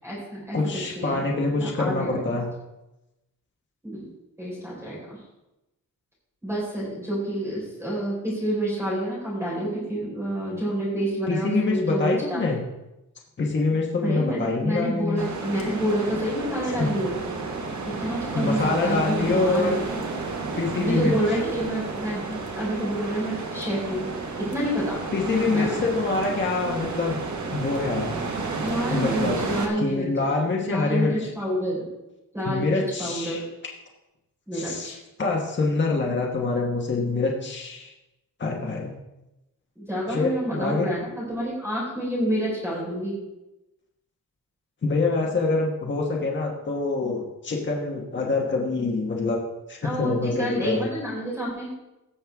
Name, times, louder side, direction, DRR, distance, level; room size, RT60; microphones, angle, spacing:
voice 1, 0.0-0.6 0.8-1.2 1.6-2.3 3.8-4.1 4.4-5.0 6.4-12.4 14.0-17.2 17.8-19.8 20.7-24.1 24.4-25.0 25.5-25.8 28.6-30.1 30.7-31.9 32.3-33.4 34.5-35.0 39.8-43.2 49.8-51.7, right 1 dB, 5° right, -7 dB, 4.3 m, -28 dB
voice 2, 0.5-2.5 11.3-12.6 13.4-15.2 16.8-16.9 18.3-19.8 20.6-21.2 25.1-27.2 27.5-28.2 28.9-29.3 29.8-31.3 32.4-33.4 34.5-34.9 35.2-37.9 38.4-38.9 40.1-40.9 44.8-49.4 49.7-50.9, left 3 dB, 30° left, -1 dB, 1.3 m, -25 dB
sound 1, 15.2-29.7, right 3 dB, 55° right, 1.5 m, -31 dB
17.0 x 6.5 x 3.5 m, 0.96 s
wide cardioid pair, 180°, 35 cm